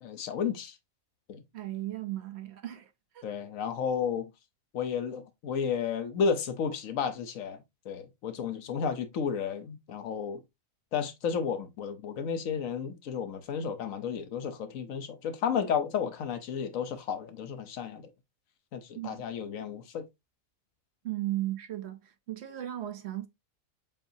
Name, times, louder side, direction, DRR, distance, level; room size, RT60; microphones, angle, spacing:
voice 1, 0.0-0.7 1.3-1.4 3.2-4.3 4.7-7.6 7.8-10.4 10.9-18.0 18.7-20.0, left 6 dB, 80° left, 1.2 m, -32 dB
voice 2, 1.5-2.9 3.1-3.2 19.0-19.2 21.0-23.3, right 14 dB, 60° right, 0.8 m, -36 dB
7.2 x 2.7 x 2.6 m
omnidirectional pair, 1.4 m